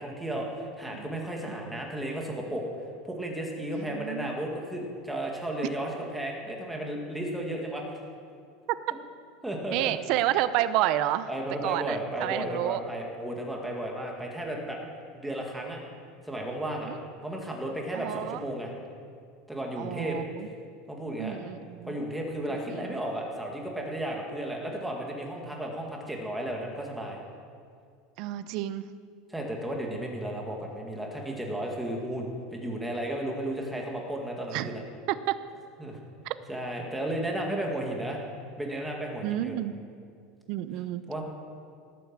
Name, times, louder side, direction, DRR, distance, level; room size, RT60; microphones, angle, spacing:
voice 1, 0.0-2.6 3.0-7.8 9.4-9.9 11.3-14.8 15.1-15.8 16.3-16.9 17.2-18.7 19.5-20.2 20.9-21.4 21.8-27.2 29.3-34.8 35.8-36.0 36.5-38.2 38.6-39.6 41.1-41.2, right 1 dB, 5° right, 0 dB, 1.9 m, -34 dB
voice 2, 1.5-1.8 3.7-4.4 8.7-8.8 9.7-11.3 11.6-12.8 16.9-17.0 17.9-18.4 19.8-20.5 21.2-22.0 22.7-23.0 28.2-28.8 34.5-34.7 35.1-35.3 36.2-36.3 39.2-39.7 40.5-41.0, right 14 dB, 45° right, 13 dB, 0.7 m, -30 dB
18.0 x 9.2 x 7.5 m, 2.2 s
supercardioid pair, 170°, 0 cm